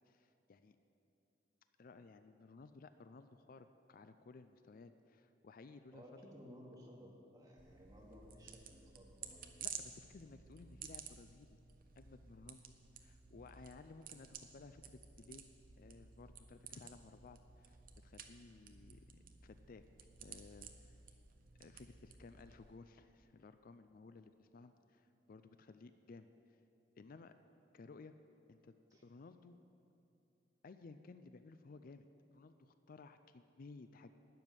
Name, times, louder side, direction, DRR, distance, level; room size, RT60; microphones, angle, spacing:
voice 1, 0.1-0.8 1.8-6.0 9.6-11.6 12.0-15.5 15.8-19.8 20.2-21.2 21.6-26.6 27.0-27.3 27.7-28.1 28.5-28.7 29.0-29.6 30.6-32.1 32.3-34.1, left 3 dB, 50° left, 10 dB, 0.4 m, -57 dB
voice 2, 5.9-9.5 28.9-29.0, equal, 20° right, -3 dB, 2.2 m, -57 dB
sound 1, 7.6-22.8, right 7 dB, 50° right, 0.8 m, -54 dB
12.0 x 7.1 x 9.7 m, 2.7 s
head